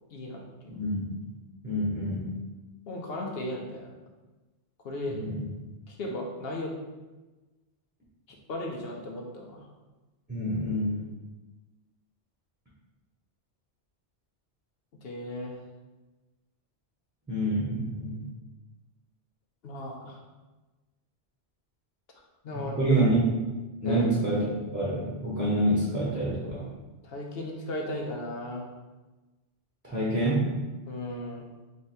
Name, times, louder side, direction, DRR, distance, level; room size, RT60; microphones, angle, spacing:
voice 1, 0.1-0.8 2.9-3.9 4.8-5.2 5.9-6.7 8.5-9.7 15.0-15.6 19.6-20.2 22.4-23.0 23.8-24.1 27.0-28.7 30.9-31.5, left 1 dB, 65° left, 0 dB, 0.9 m, -35 dB
voice 2, 0.7-1.2 1.6-2.3 5.1-5.4 10.3-11.0 17.3-18.2 22.5-23.2 23.8-24.4 24.7-26.7 29.8-30.4, right 1 dB, 10° right, -8 dB, 0.9 m, -27 dB
3.3 x 3.3 x 4.4 m, 1.2 s
omnidirectional pair, 1.1 m